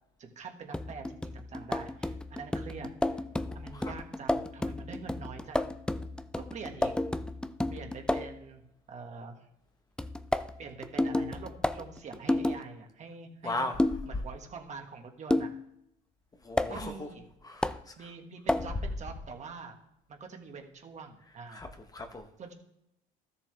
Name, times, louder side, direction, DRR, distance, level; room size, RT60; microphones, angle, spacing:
voice 1, 0.2-3.2 3.5-5.8 6.4-6.9 7.7-8.6 8.9-9.5 10.6-13.7 14.0-15.5 16.7-17.2 18.0-19.7 20.1-21.6 22.4-22.5, right 5 dB, 40° right, 3 dB, 1.6 m, -45 dB
sound 1, 0.7-8.4 10.0-12.6 13.8-14.1 15.3-15.6 16.6-16.7 17.6-17.8 18.5-18.7, left 1 dB, 5° left, 0.4 m, -31 dB
voice 2, 3.4-4.0 13.4-14.0 16.4-17.1 17.4-18.1 18.6-18.8 21.5-22.3, left 2 dB, 20° left, 6 dB, 1.0 m, -38 dB
13.0 x 7.0 x 3.4 m, 0.81 s
supercardioid pair, 100°, 18 cm